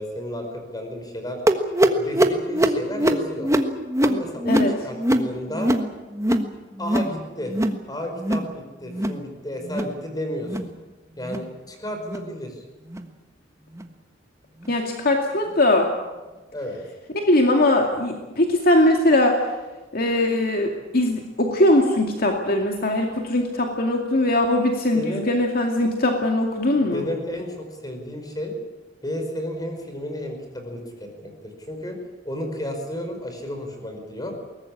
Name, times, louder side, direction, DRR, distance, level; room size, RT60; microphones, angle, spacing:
voice 1, 0.0-1.4 1.9-3.5 4.0-5.7 6.8-7.5 7.9-10.7 11.2-12.6 16.5-16.8 24.9-25.3 26.7-28.5 29.0-32.0 32.2-34.4, left 1 dB, 20° left, 4 dB, 5.1 m, -32 dB
sound 1, 1.5-6.5 6.8-7.2 7.4-7.8 8.1-8.5 8.9-9.2 9.6-10.0 10.4-10.7 11.2-11.5 12.0-12.3 12.9-13.1 13.8-13.9 14.6-14.7, right 1 dB, 15° right, 1.4 m, -23 dB
voice 2, 14.7-15.9 17.3-19.5 19.9-27.1, left 1 dB, 55° left, 2 dB, 2.3 m, -20 dB
22.0 x 19.0 x 8.7 m, 1.2 s
head